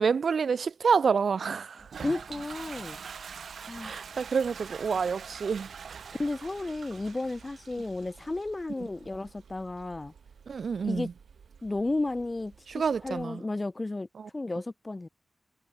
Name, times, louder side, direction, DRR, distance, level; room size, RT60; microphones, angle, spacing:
voice 1, 0.0-1.9 3.8-5.7 10.5-11.1 12.7-13.4 14.2-14.3, right 6 dB, 65° right, 0.4 m, -28 dB
Toilet flush, 1.8-13.2, right 6 dB, 90° right, 2.7 m, -46 dB
voice 2, 2.0-3.0 3.6-4.1 6.1-10.1 10.8-11.1 11.6-14.1 14.3-15.1, left 2 dB, 20° left, 0.6 m, -33 dB
wide cardioid pair, 165°, 0 cm